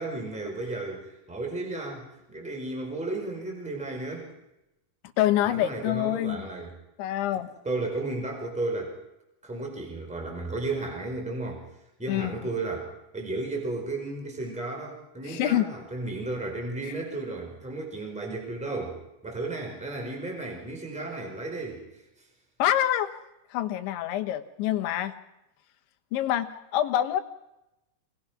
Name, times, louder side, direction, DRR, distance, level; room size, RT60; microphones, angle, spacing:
voice 1, 0.0-4.3 5.5-6.7 7.6-8.9 9.4-11.6 12.0-12.9 13.1-19.0 19.2-22.0, right 2 dB, ahead, 2 dB, 4.2 m, -34 dB
voice 2, 5.2-6.5 7.0-7.5 12.1-12.4 15.2-15.6 22.6-23.1 23.5-25.1 26.1-27.2, left 12 dB, 85° left, 8 dB, 3.5 m, -26 dB
27.0 x 19.5 x 6.0 m, 0.91 s
omnidirectional pair, 5.2 m